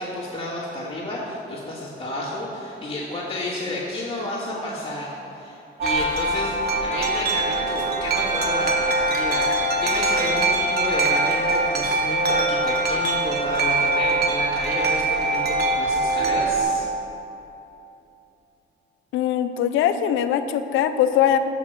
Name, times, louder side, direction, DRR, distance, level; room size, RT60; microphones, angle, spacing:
voice 1, 0.0-6.5 6.8-16.9, left 2 dB, 25° left, -10 dB, 1.6 m, -31 dB
Wind chime, 5.8-16.6, right 2 dB, 55° right, 0.9 m, -23 dB
voice 2, 19.1-21.4, left 10 dB, 80° left, 10 dB, 0.4 m, -21 dB
5.9 x 4.6 x 6.4 m, 3.0 s
cardioid pair, 90°, 20 cm